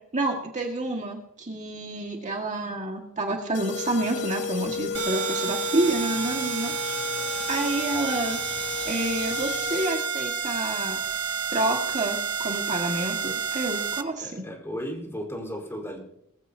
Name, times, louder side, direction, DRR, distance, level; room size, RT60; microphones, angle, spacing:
voice 1, 0.1-6.7 7.5-8.4 8.9-11.0 11.5-14.4, right 2 dB, 35° right, 1 dB, 1.8 m, -28 dB
sound 1, 3.5-10.3, left 6 dB, 55° left, 2.3 m, -34 dB
sound 2, 4.9-14.0, right 6 dB, 90° right, 1.1 m, -30 dB
voice 2, 14.2-16.0, equal, 10° left, -1 dB, 4.4 m, -35 dB
20.5 x 15.0 x 2.8 m, 0.74 s
head